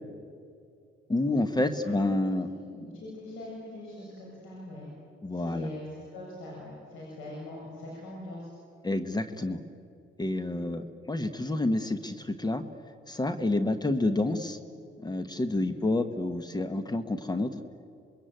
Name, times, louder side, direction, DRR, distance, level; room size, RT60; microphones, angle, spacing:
voice 1, 1.1-2.5 5.2-5.7 8.8-9.6 10.2-12.6 13.1-14.6 15.0-17.5, left 2 dB, 20° left, 10 dB, 1.4 m, -29 dB
voice 2, 1.8-4.9 5.3-8.5 15.5-15.8, left 1 dB, 90° left, -3 dB, 7.2 m, -43 dB
27.0 x 21.5 x 9.3 m, 2.5 s
cardioid pair, 90°, 20 cm